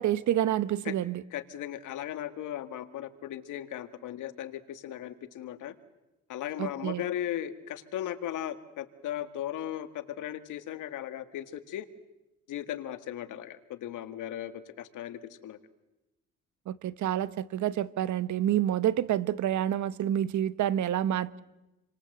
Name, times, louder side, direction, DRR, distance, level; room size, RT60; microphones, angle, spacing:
voice 1, 0.0-1.2 6.6-7.0 16.7-21.4, right 11 dB, 70° right, 1.2 m, -28 dB
voice 2, 1.3-5.7 6.3-11.9 12.5-15.6, left 11 dB, 85° left, 2.0 m, -37 dB
29.0 x 25.0 x 8.0 m
cardioid pair, 90°, 30 cm